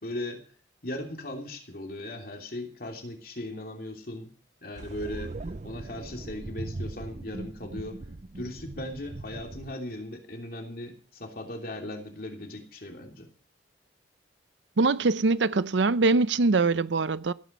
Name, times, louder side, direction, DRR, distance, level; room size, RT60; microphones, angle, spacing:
voice 1, 0.0-0.5 0.8-4.3 4.6-5.4 5.6-8.0 8.3-13.3, left 1 dB, 55° left, 3.1 m, -38 dB
sound 1, 4.8-9.7, right 2 dB, 40° right, 0.6 m, -39 dB
voice 2, 14.8-17.3, right 3 dB, 80° right, 0.7 m, -23 dB
17.0 x 9.4 x 6.7 m
head